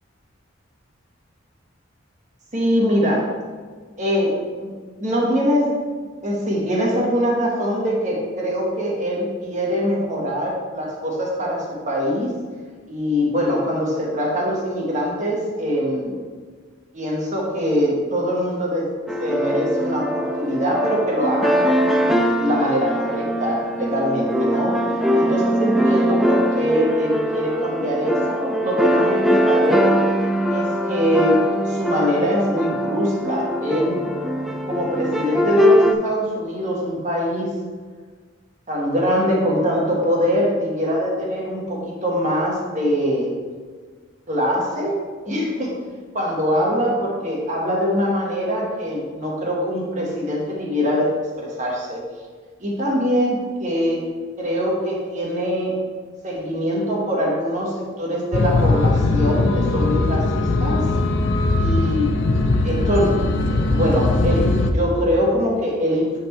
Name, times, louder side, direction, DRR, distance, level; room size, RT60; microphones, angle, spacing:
voice 1, 2.5-3.3 4.0-4.7 5.0-5.8 6.2-12.3 12.9-16.2 16.9-18.9 19.2-21.7 22.0-24.8 25.1-30.0 30.5-34.0 34.7-37.5 38.7-43.3 44.3-45.8 46.1-51.1 51.4-52.0 52.6-54.0 54.4-55.8 56.2-60.9 61.6-62.1 62.6-63.2 63.5-66.2, equal, 35° right, -3 dB, 1.4 m, -23 dB
sound 1, 19.1-35.9, equal, ahead, 0.4 m, -21 dB
sound 2, 58.3-64.7, left 2 dB, 60° left, 0.5 m, -20 dB
9.4 x 4.3 x 3.2 m, 1.5 s
head